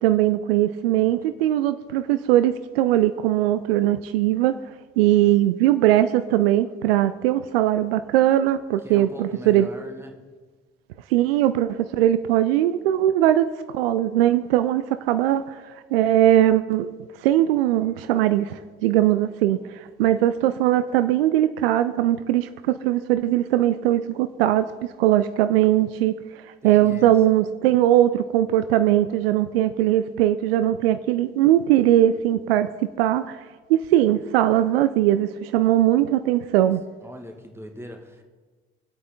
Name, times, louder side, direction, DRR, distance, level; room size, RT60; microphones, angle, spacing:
voice 1, 0.0-4.6 5.0-9.7 11.1-16.9 17.2-24.7 25.0-26.1 26.4-32.7 33.0-33.4 33.7-36.8, right 13 dB, 70° right, 12 dB, 0.5 m, -20 dB
voice 2, 8.8-10.2 26.6-27.1 37.0-38.2, equal, 10° right, 3 dB, 1.9 m, -40 dB
21.0 x 8.4 x 4.0 m, 1.3 s
figure-of-eight pair, 45°, 31 cm